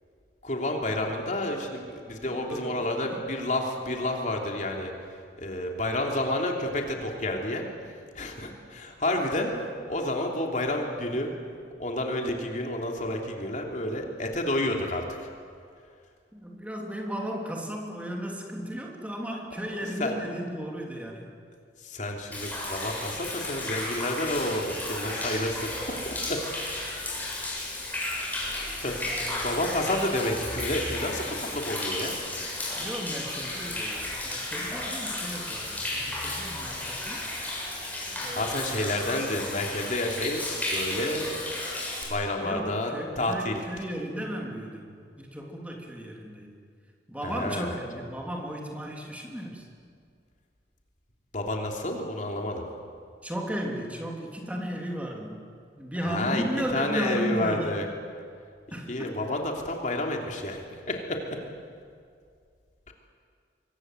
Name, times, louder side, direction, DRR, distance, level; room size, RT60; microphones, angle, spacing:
voice 1, 0.4-4.9 5.4-7.6 8.1-11.3 11.8-15.3 19.8-20.2 21.8-26.4 28.8-29.0 29.4-32.2 38.3-40.4 40.7-41.4 42.1-42.9 43.2-43.6 47.2-47.8 51.3-52.6 56.0-56.4 56.7-57.9 58.9-61.4 62.9-63.0, left 1 dB, 45° left, 1 dB, 3.1 m, -30 dB
voice 2, 2.3-3.2 16.3-21.3 29.0-29.4 32.7-37.3 38.2-38.9 42.4-46.5 47.1-49.7 53.2-55.4 55.7-57.8 58.7-59.2, equal, 10° right, 0 dB, 3.1 m, -35 dB
Human voice / Rain / Stream, 22.3-42.0, left 1 dB, 10° left, 7.3 m, -33 dB
26.5 x 23.5 x 8.0 m, 2.2 s
head